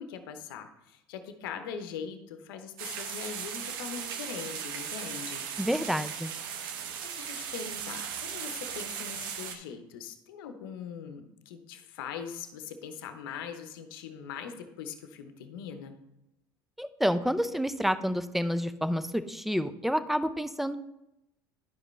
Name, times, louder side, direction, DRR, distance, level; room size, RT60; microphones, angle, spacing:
voice 1, 0.0-5.5 7.0-16.0, left 7 dB, 80° left, 8 dB, 0.8 m, -41 dB
sound 1, 2.8-9.6, right 8 dB, 80° right, 0.9 m, -37 dB
voice 2, 5.6-6.3 16.8-20.8, equal, ahead, 12 dB, 0.5 m, -29 dB
11.0 x 5.0 x 3.2 m, 0.87 s
hypercardioid pair, 80°, 12 cm